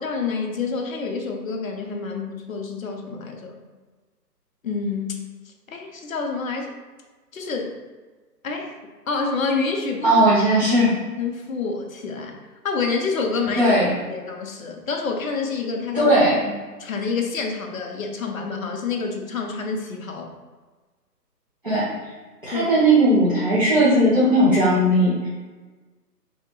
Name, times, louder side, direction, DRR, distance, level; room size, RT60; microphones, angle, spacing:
voice 1, 0.0-3.6 4.6-5.2 5.7-6.7 7.3-7.8 8.4-8.8 9.1-10.2 11.2-12.4 12.6-13.7 14.1-16.1 16.8-20.3 22.5-22.7, left 4 dB, 60° left, 2 dB, 0.5 m, -27 dB
voice 2, 10.0-10.9 13.6-13.9 15.9-16.5 21.6-21.9 22.4-25.3, right 1 dB, 35° right, -12 dB, 0.5 m, -17 dB
2.7 x 2.1 x 2.8 m, 1.3 s
hypercardioid pair, 170°, 49 cm